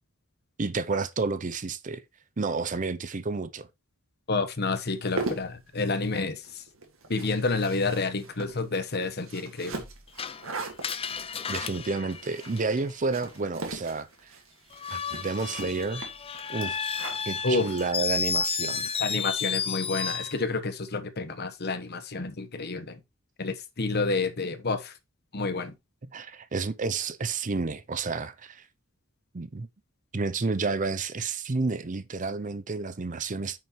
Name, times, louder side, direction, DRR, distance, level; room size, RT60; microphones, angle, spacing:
voice 1, 0.6-2.0 2.4-3.7 11.5-14.3 14.9-16.1 16.5-16.8 17.2-19.0 26.1-28.7 29.3-29.7 30.1-33.6, right 4 dB, 40° right, 0.6 m, -30 dB
voice 2, 4.3-6.6 7.1-9.8 17.4-17.7 19.0-23.0 23.4-24.9 25.3-25.7, left 3 dB, 50° left, 1.2 m, -29 dB
sound 1, 4.9-18.4, right 3 dB, 80° right, 2.0 m, -40 dB
Screech, 10.2-13.1 14.7-20.4, left 6 dB, 30° left, 0.6 m, -32 dB
8.7 x 6.3 x 3.1 m
head